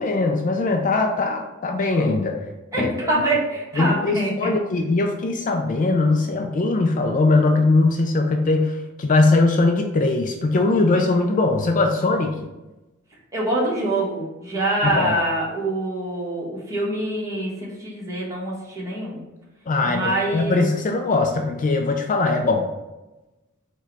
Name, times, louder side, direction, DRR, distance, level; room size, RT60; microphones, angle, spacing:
voice 1, 0.0-2.4 2.7-3.1 3.8-12.4 14.8-15.2 19.7-22.7, left 3 dB, 40° left, 3 dB, 0.4 m, -20 dB
voice 2, 2.7-4.5 13.3-19.2 19.8-20.7, right 1 dB, 15° right, -5 dB, 1.3 m, -25 dB
4.6 x 2.3 x 4.5 m, 1.0 s
head